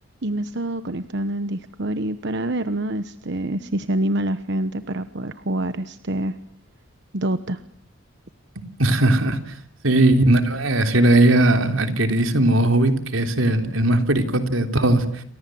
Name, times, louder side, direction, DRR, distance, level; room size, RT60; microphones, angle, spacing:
voice 1, 0.2-6.3 7.1-7.6 10.0-10.3, right 1 dB, 60° right, 11 dB, 1.2 m, -26 dB
voice 2, 8.8-9.5 9.8-15.2, right 1 dB, 85° right, 7 dB, 3.5 m, -18 dB
29.0 x 25.5 x 7.8 m, 0.62 s
head